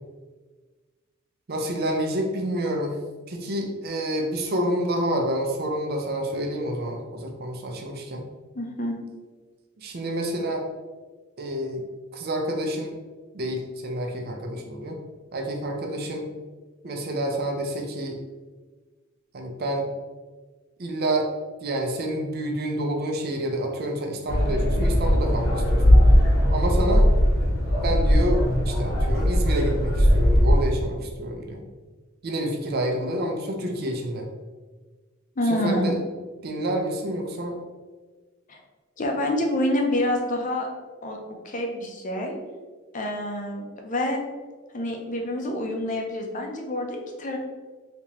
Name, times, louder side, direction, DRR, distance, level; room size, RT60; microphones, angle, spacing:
voice 1, 1.5-3.0 3.3-8.3 9.8-10.6 11.4-11.8 12.1-13.0 13.3-15.0 15.3-16.3 16.8-18.2 19.3-19.9 20.8-21.3 21.6-26.0 26.5-27.1 27.8-31.7 32.2-34.3 35.5-36.0 36.4-37.6, right 1 dB, 50° right, 2 dB, 0.5 m, -28 dB
voice 2, 8.5-9.0 35.4-36.0 38.5-38.6 39.0-40.7 41.0-41.2 41.4-42.4 42.9-44.2 44.7-47.4, left 1 dB, 40° left, 2 dB, 0.6 m, -27 dB
sound 1, 24.3-30.6, equal, 70° left, 0.9 m, -19 dB
3.5 x 2.9 x 3.0 m, 1.3 s
head